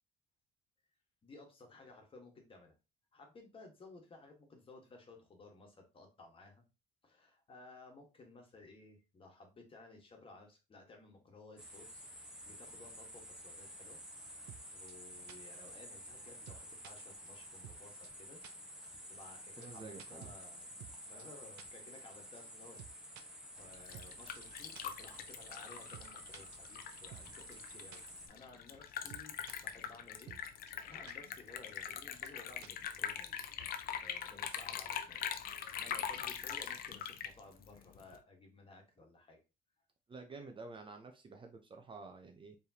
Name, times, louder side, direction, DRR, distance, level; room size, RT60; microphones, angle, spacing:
voice 1, 1.2-2.7 3.1-6.6 7.0-12.0 12.5-14.0 14.3-18.4 18.7-20.7 21.1-22.8 23.2-30.4 30.8-35.4 35.7-39.4, left 3 dB, 30° left, 1.5 m, -57 dB
sound 1, 11.6-28.3, equal, 5° right, 1.1 m, -51 dB
sound 2, 14.5-14.6 14.9-15.0 15.3-15.4 15.7-15.8 16.0-16.1 16.5-16.9 17.3-17.4 17.6-17.8 18.0-18.1 18.4-18.5 18.8-18.9 19.2-19.3 19.6-19.7 20.0-20.9 21.2-21.3 21.6-21.7 22.0-22.1 22.4-22.5 22.8-23.2 23.6-23.7 23.9-24.1 24.3-24.4 24.8-24.9 25.1-25.2 25.5-25.6 25.9-26.1 26.3-27.2 27.5-27.6 27.9-28.0 28.3-28.4 28.7-28.8 29.1-29.6 29.9-30.0 30.3-30.4 30.7-30.8 31.0-31.1 31.5-31.6 31.8-31.9 32.2-32.3 32.6-32.9, right 11 dB, 80° right, 0.6 m, -53 dB
voice 2, 19.6-20.4 40.1-42.6, right 3 dB, 30° right, 0.7 m, -50 dB
Liquid, 23.6-38.2, left 9 dB, 60° left, 0.6 m, -43 dB
4.4 x 3.4 x 2.8 m
cardioid pair, 110°, 17 cm